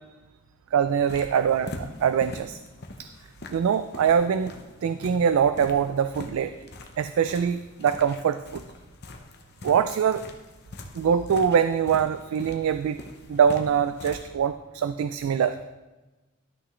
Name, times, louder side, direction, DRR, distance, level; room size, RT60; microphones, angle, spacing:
voice 1, 0.7-2.6 3.0-3.1 3.5-4.5 4.8-6.5 7.0-8.6 9.6-10.2 10.9-13.0 13.3-15.6, right 7 dB, 75° right, 11 dB, 0.3 m, -23 dB
sound 1, 0.9-14.3, left 2 dB, 50° left, 0.8 m, -43 dB
12.5 x 6.0 x 3.2 m, 1.1 s
head